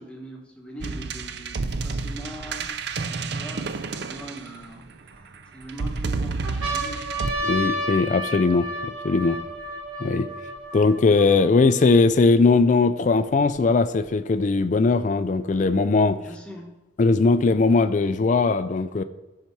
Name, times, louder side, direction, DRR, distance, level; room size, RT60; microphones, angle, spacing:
voice 1, 0.0-7.1 16.2-16.7, right 1 dB, 5° left, 0 dB, 1.2 m, -42 dB
sound 1, 0.8-4.9 5.7-7.3, right 4 dB, 55° right, 0.5 m, -30 dB
sound 2, 3.6-4.1 4.8-5.6 6.1-6.2 6.4-12.1 12.8-12.9 13.0-14.0 15.0-16.0, equal, 85° right, 2.6 m, -32 dB
voice 2, 7.4-9.4 10.0-10.3 10.7-16.2 17.0-19.0, left 3 dB, 35° left, 10 dB, 0.3 m, -20 dB
13.0 x 5.8 x 4.6 m, 1.1 s
head